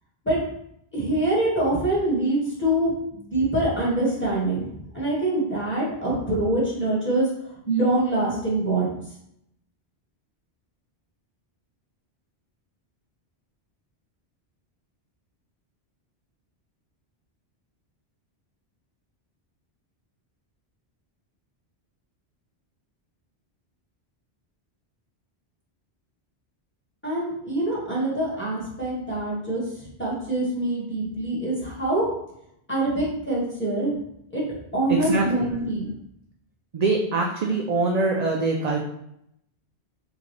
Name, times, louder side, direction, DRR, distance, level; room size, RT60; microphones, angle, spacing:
voice 1, 0.9-7.3 7.7-8.9 27.0-32.1 32.7-33.9 34.3-34.4 34.7-35.9, right 1 dB, 10° left, -7 dB, 1.6 m, -25 dB
voice 2, 34.9-35.2 36.7-38.8, right 3 dB, 55° right, 0 dB, 0.5 m, -23 dB
3.7 x 3.4 x 3.2 m, 0.76 s
omnidirectional pair, 1.1 m